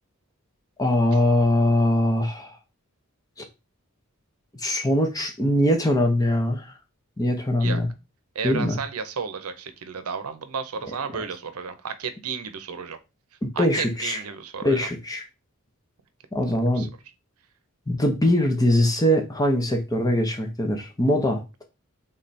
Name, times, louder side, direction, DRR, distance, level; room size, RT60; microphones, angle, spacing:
voice 1, 0.8-2.6 4.6-6.7 7.2-7.9 8.4-8.8 11.1-11.3 13.4-14.2 14.6-15.2 16.3-16.9 17.9-21.6, left 1 dB, 15° left, 0.7 m, -22 dB
voice 2, 8.3-13.0 13.6-14.9 16.8-16.9, right 6 dB, 85° right, 0.7 m, -33 dB
3.6 x 3.3 x 4.1 m
head